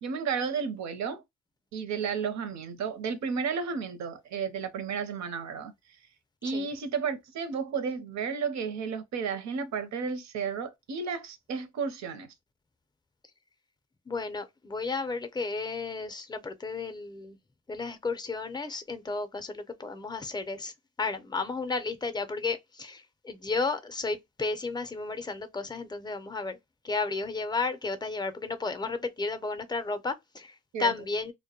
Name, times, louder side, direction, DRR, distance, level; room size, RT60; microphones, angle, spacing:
voice 1, 0.0-1.2 1.7-5.7 6.4-12.3 30.7-30.9, right 6 dB, 65° right, 0.7 m, -32 dB
voice 2, 14.1-17.4 17.7-20.7 21.0-26.6 26.8-31.3, left 3 dB, 15° left, 0.5 m, -33 dB
2.1 x 2.1 x 2.8 m
cardioid pair, 90°, 30 cm